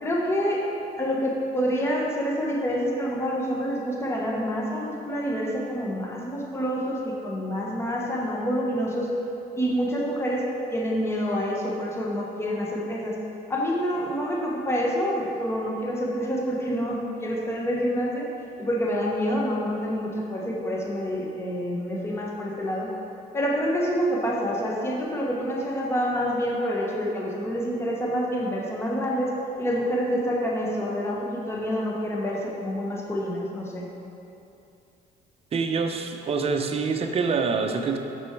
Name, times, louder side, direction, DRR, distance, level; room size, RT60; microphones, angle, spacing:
voice 1, 0.0-0.6 1.0-9.1 9.5-13.2 13.5-18.3 18.6-23.0 23.3-33.9, equal, 15° left, -3 dB, 1.1 m, -27 dB
voice 2, 35.5-38.0, right 5 dB, 35° right, 4 dB, 0.6 m, -25 dB
6.2 x 6.2 x 4.6 m, 2.8 s
cardioid pair, 110°, 17 cm